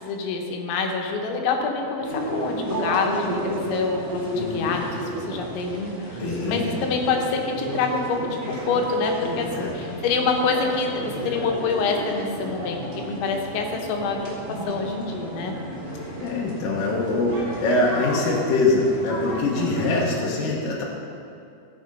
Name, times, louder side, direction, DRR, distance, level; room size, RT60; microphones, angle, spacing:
voice 1, 0.0-4.9 5.3-14.4 14.7-15.6, left 4 dB, 85° left, 2 dB, 3.5 m, -26 dB
sound 1, 2.0-20.0, right 1 dB, 20° right, 1.5 m, -32 dB
voice 2, 4.3-4.8 6.2-6.9 9.5-9.7 16.2-20.8, left 2 dB, 65° left, -3 dB, 2.3 m, -23 dB
15.5 x 6.5 x 5.3 m, 2.6 s
omnidirectional pair, 5.2 m